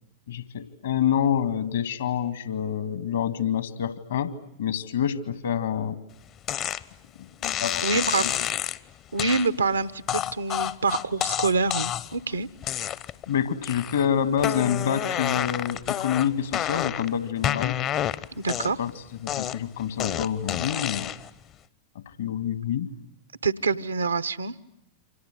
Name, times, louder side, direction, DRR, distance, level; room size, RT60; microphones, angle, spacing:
voice 1, 0.3-6.0 7.2-8.3 13.3-17.8 18.8-18.9 19.2-21.1 22.0-22.9, left 8 dB, 65° left, 11 dB, 2.2 m, -27 dB
sound 1, 6.5-6.8 7.4-8.8 9.2-9.5 10.1-12.2 12.6-13.2 13.6-14.1 14.4-17.1 17.4-18.9 19.3-21.3, left 11 dB, 35° left, 1.0 m, -29 dB
voice 2, 7.8-8.2 9.1-12.5 18.3-18.8 23.4-24.5, right 4 dB, 75° right, 15 dB, 1.1 m, -26 dB
29.0 x 26.5 x 7.8 m, 0.80 s
figure-of-eight pair, 90°, 0 cm